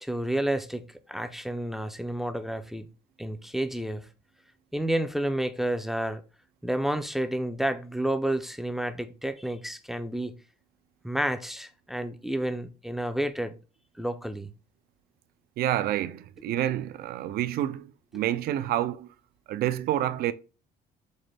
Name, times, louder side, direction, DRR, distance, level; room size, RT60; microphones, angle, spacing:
voice 1, 0.0-2.9 3.2-4.1 4.7-6.2 6.6-10.4 11.0-13.6 14.0-14.5, right 1 dB, ahead, 0.4 m, -30 dB
voice 2, 15.6-19.1 19.5-20.3, right 12 dB, 65° right, 0.4 m, -28 dB
5.3 x 2.1 x 3.2 m
cardioid pair, 110°, 17 cm